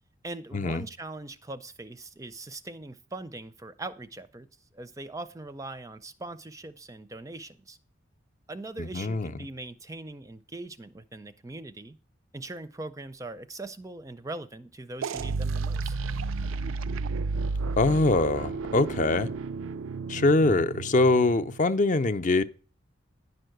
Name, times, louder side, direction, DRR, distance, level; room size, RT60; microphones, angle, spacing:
voice 1, 0.2-4.5 4.7-7.8 8.5-12.0 12.3-16.0, right 2 dB, 15° right, 0.5 m, -41 dB
voice 2, 8.8-9.3 17.8-19.3 20.1-22.4, left 2 dB, 40° left, 0.6 m, -23 dB
sound 1, 15.0-21.6, right 4 dB, 85° right, 0.4 m, -32 dB
10.5 x 5.6 x 7.8 m
head